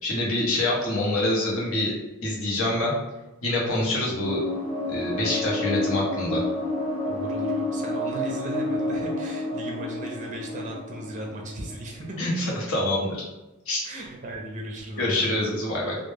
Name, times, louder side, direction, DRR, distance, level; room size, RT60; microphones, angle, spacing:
voice 1, 0.0-1.9 2.2-2.9 3.4-4.4 4.9-6.4 12.2-13.2 13.7-13.8 15.0-16.0, left 1 dB, 70° left, -4 dB, 0.8 m, -26 dB
sound 1, 4.2-12.3, left 2 dB, 40° left, 0.6 m, -29 dB
voice 2, 7.1-12.2 13.8-15.4, right 1 dB, 35° right, 0 dB, 0.4 m, -37 dB
2.1 x 2.1 x 3.1 m, 1.0 s
head